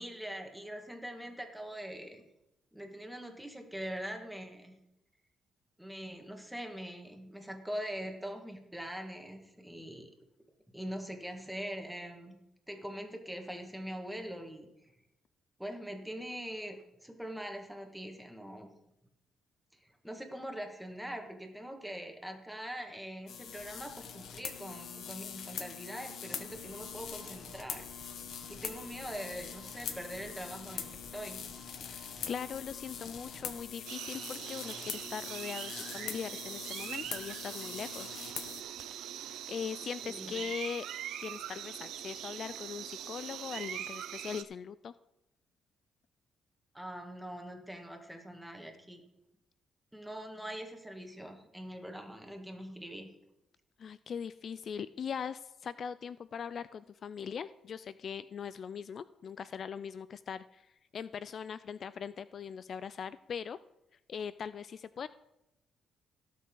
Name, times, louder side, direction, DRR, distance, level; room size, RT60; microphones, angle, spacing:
voice 1, 0.0-2.2 2.7-4.8 5.8-10.1 10.7-12.4 12.7-14.7 15.6-18.7 19.7-27.9 28.5-31.4 40.0-40.4 46.7-49.0 49.9-53.1, equal, 5° right, 3 dB, 1.8 m, -43 dB
sound 1, 23.3-38.6, left 8 dB, 70° left, 1.2 m, -43 dB
sound 2, 26.5-33.6, right 2 dB, 25° right, 1.5 m, -55 dB
voice 2, 32.3-38.2 39.3-40.9 41.2-44.9 53.8-63.6 64.1-65.1, left 7 dB, 55° left, 15 dB, 0.3 m, -41 dB
sound 3, 33.9-44.4, right 11 dB, 85° right, 0.6 m, -42 dB
17.5 x 6.6 x 3.9 m, 0.88 s
cardioid pair, 90°, 0 cm